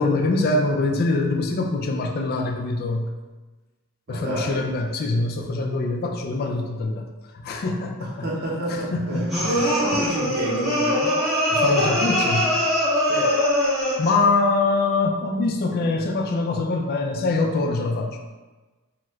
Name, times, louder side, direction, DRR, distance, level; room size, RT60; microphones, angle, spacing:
voice 1, 0.0-3.1 4.1-7.0 7.4-8.3 8.7-9.7 11.5-12.5 14.0-18.2, left 3 dB, 45° left, 2 dB, 0.3 m, -24 dB
voice 2, 4.1-4.8 8.0-11.2 13.1-13.4, right 1 dB, 50° right, -4 dB, 0.7 m, -29 dB
sound 1, 9.3-14.2, left 1 dB, ahead, 0.7 m, -22 dB
2.8 x 2.3 x 3.1 m, 1.2 s
head